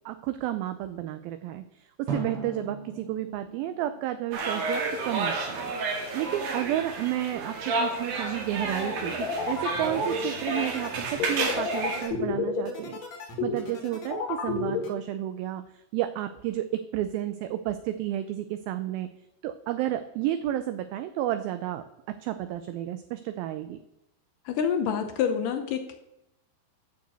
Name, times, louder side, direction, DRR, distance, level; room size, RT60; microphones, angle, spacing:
voice 1, 0.1-5.7 6.1-19.1 19.4-21.8 22.2-23.8, right 13 dB, 80° right, 10 dB, 2.1 m, -31 dB
Drum, 2.1-5.0, right 4 dB, 45° right, 2.2 m, -38 dB
sound 1, 4.3-12.1, right 3 dB, 65° right, 3.5 m, -31 dB
sound 2, 9.1-14.9, left 6 dB, 50° left, 2.7 m, -31 dB
voice 2, 24.5-25.9, left 7 dB, 75° left, 7 dB, 2.0 m, -27 dB
9.6 x 6.7 x 8.0 m, 0.85 s
omnidirectional pair, 4.7 m